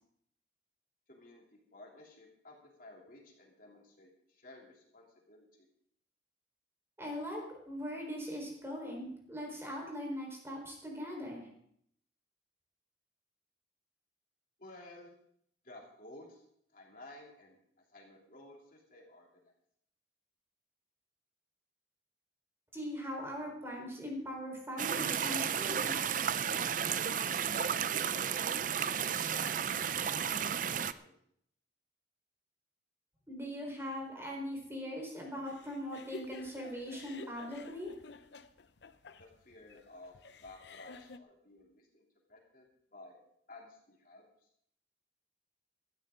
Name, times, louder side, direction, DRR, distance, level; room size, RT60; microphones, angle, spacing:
voice 1, 1.1-5.7 14.6-15.2 15.6-16.4 16.7-17.6 17.9-19.5 27.1-29.9 30.2-31.1 39.2-42.6 42.9-43.2 43.5-44.2, left 2 dB, 50° left, -1 dB, 3.2 m, -55 dB
voice 2, 7.0-11.5 22.7-26.2 33.3-37.9, equal, 15° right, 0 dB, 4.4 m, -40 dB
sound 1, 24.8-30.9, right 8 dB, 45° right, 0.5 m, -33 dB
sound 2, 35.5-41.2, left 3 dB, 70° left, 0.8 m, -51 dB
17.5 x 13.5 x 3.8 m, 0.69 s
head